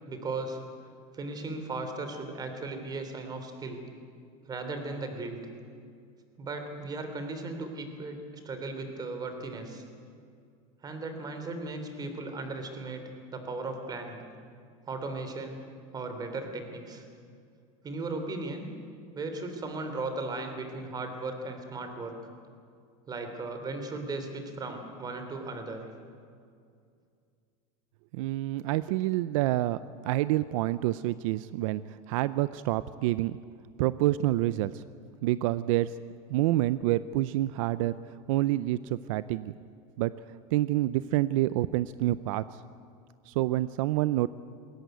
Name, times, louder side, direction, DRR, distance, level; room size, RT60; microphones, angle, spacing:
voice 1, 0.1-0.6 1.1-3.8 4.5-5.4 6.4-8.2 8.4-9.8 10.8-14.2 14.9-15.6 15.9-17.0 17.8-18.7 19.1-22.1 23.1-25.8, right 3 dB, 25° right, 6 dB, 3.3 m, -36 dB
voice 2, 28.1-29.8 30.0-31.8 32.1-33.4 33.8-34.8 35.2-35.9 36.3-37.9 38.3-39.5 40.0-40.1 40.5-42.4 43.3-44.3, right 15 dB, 75° right, 16 dB, 0.6 m, -27 dB
21.5 x 17.5 x 9.3 m, 2.3 s
supercardioid pair, 140°, 17 cm